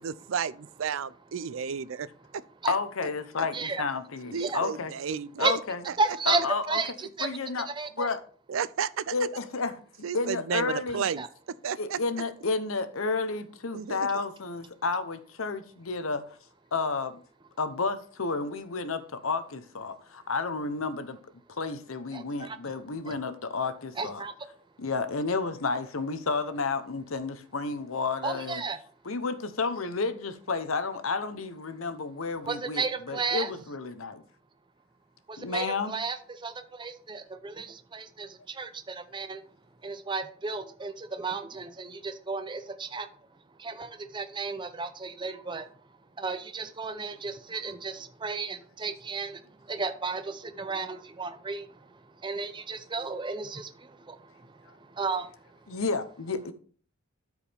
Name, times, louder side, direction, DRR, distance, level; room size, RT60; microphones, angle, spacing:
voice 1, 0.0-2.1 2.6-2.7 4.3-5.5 8.5-9.1 10.0-12.3 13.7-14.1, right 7 dB, 65° right, 0.4 m, -32 dB
voice 2, 2.7-4.9 5.4-5.8 6.3-6.8 7.2-7.7 8.0-8.2 9.1-9.7 10.1-11.1 11.8-16.2 16.7-17.2 17.6-21.2 21.6-24.2 24.8-28.6 29.0-34.2 35.4-36.0 55.7-56.5, left 4 dB, 70° left, 0.8 m, -31 dB
voice 3, 6.0-7.3 7.7-8.1 11.2-11.3 22.1-22.6 23.1-23.2 24.0-24.3 28.2-28.8 32.5-33.5 35.3-39.4 39.8-43.1 43.6-45.7 46.2-55.6, right 4 dB, 20° right, 0.6 m, -33 dB
12.5 x 4.8 x 3.5 m
head